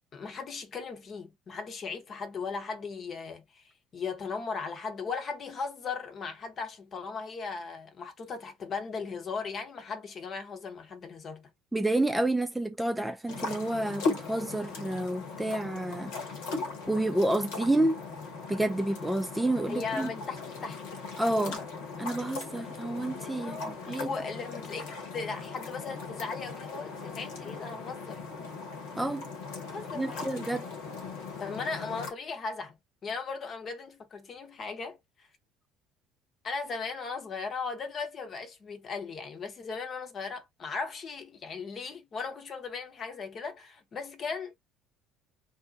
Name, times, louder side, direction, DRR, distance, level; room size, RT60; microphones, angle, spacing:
voice 1, 0.1-11.5 19.7-20.8 21.4-21.7 23.4-28.2 29.7-30.3 31.4-35.0 36.4-44.5, left 4 dB, 40° left, 0.9 m, -37 dB
voice 2, 11.7-16.1 16.9-18.0 18.5-20.1 21.2-21.6 22.0-24.1 29.0-29.2 29.9-30.7, right 1 dB, 5° right, 0.4 m, -29 dB
sound 1, 13.3-32.1, left 4 dB, 65° left, 1.1 m, -38 dB
2.7 x 2.1 x 4.0 m
figure-of-eight pair, 60°, 0 cm